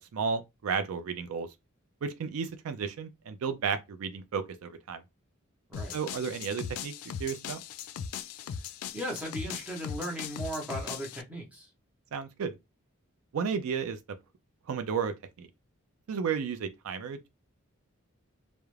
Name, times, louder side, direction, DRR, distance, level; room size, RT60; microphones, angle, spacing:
voice 1, 0.0-1.5 2.0-5.0 5.9-6.9 7.2-7.6 12.1-12.6 13.3-14.0 14.7-15.5 16.1-17.3, right 6 dB, 80° right, 0.4 m, -33 dB
sound 1, 5.7-11.2, left 7 dB, 85° left, 0.3 m, -39 dB
voice 2, 8.9-11.7, equal, 5° right, 0.7 m, -37 dB
2.4 x 2.0 x 3.1 m
head